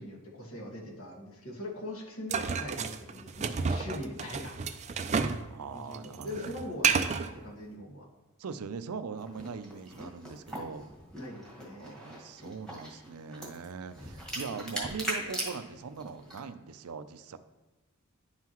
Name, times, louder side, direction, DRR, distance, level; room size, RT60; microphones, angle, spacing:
voice 1, 0.0-4.5 5.7-8.0 11.2-12.0, left 1 dB, 65° left, -2 dB, 1.7 m, -41 dB
sound 1, 2.3-5.4 5.7-7.3, right 5 dB, 30° right, 0.4 m, -30 dB
voice 2, 5.5-6.8 8.4-10.9 11.8-17.4, right 5 dB, 85° right, 11 dB, 0.5 m, -41 dB
sound 2, 9.2-16.4, right 1 dB, 5° left, 1.6 m, -40 dB
10.5 x 5.7 x 3.0 m, 1.1 s
head